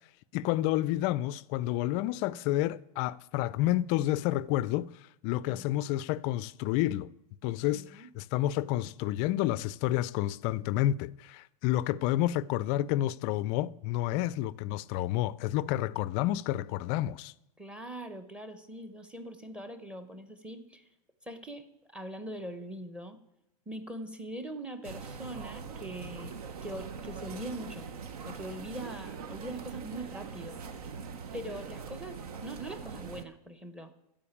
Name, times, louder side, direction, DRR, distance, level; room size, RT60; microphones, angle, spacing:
voice 1, 0.3-4.9 5.2-7.1 7.4-17.3, left 14 dB, 35° left, 0.4 m, -30 dB
voice 2, 7.7-8.1 14.1-14.3 17.6-20.9 21.2-23.2 23.7-26.4 26.6-27.9 28.3-30.6 31.3-33.9, right 1 dB, 5° right, 0.9 m, -42 dB
sound 1, 24.8-33.2, right 5 dB, 75° right, 1.1 m, -42 dB
14.0 x 5.2 x 8.6 m
supercardioid pair, 140°, 20 cm